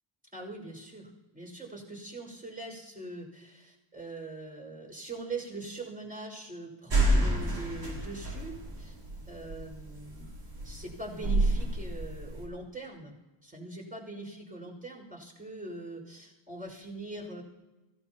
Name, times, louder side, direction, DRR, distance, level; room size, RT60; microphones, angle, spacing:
voice 1, 0.3-9.0 9.3-10.3 10.6-13.1 13.4-17.4, right 2 dB, 15° right, -1 dB, 5.7 m, -42 dB
sound 1, 6.9-12.4, right 1 dB, 55° right, 6.3 m, -29 dB
26.0 x 16.0 x 3.0 m, 1.1 s
wide cardioid pair, 115°, 50 cm